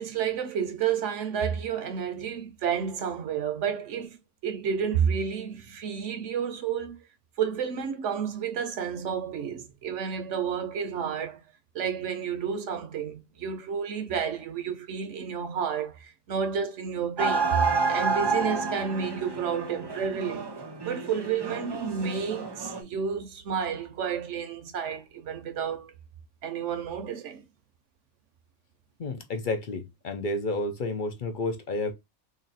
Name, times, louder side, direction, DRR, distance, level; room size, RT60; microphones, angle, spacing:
voice 1, 0.0-4.2 4.4-7.0 7.4-11.4 11.7-17.6 17.9-20.5 20.8-25.9 26.4-27.4, right 7 dB, 90° right, 1.1 m, -31 dB
sound 1, 17.2-22.8, right 4 dB, 30° right, 0.5 m, -29 dB
voice 2, 29.0-31.9, left 2 dB, 50° left, 0.7 m, -31 dB
3.0 x 2.6 x 4.0 m
omnidirectional pair, 1.2 m